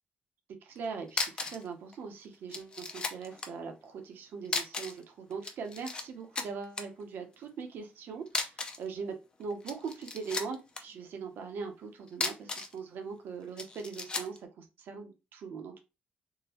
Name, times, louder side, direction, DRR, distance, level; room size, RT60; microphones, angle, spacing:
voice 1, 0.6-15.8, right 5 dB, 65° right, 4 dB, 0.8 m, -41 dB
sound 1, 0.7-0.8 1.1-1.7 1.9-2.0 2.5-3.5 4.4-5.0 5.3-6.0 6.3-6.8 8.3-8.9 9.5-10.8 12.1-12.8 13.6-14.4, left 3 dB, 25° left, 0.4 m, -35 dB
3.7 x 2.2 x 2.9 m, 0.27 s
cardioid pair, 165°, 4 cm